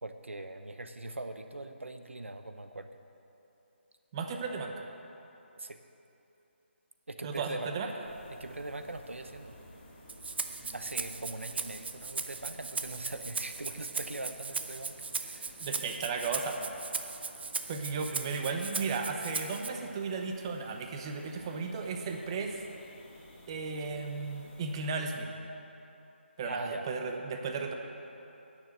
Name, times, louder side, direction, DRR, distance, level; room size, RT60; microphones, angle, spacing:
voice 1, 0.0-2.9 5.6-5.8 7.1-9.5 10.7-15.6 26.4-26.9, right 2 dB, 85° right, 8 dB, 0.8 m, -41 dB
voice 2, 4.1-4.8 7.2-7.9 10.6-10.7 15.6-16.7 17.7-22.5 23.5-25.3 26.4-27.7, right 4 dB, 25° right, 4 dB, 0.8 m, -35 dB
sound 1, 8.0-24.9, left 1 dB, 15° left, 2.2 m, -54 dB
Rattle (instrument), 10.1-19.7, right 4 dB, 55° right, 0.7 m, -38 dB
9.8 x 6.8 x 7.7 m, 2.9 s
figure-of-eight pair, 155°, 7 cm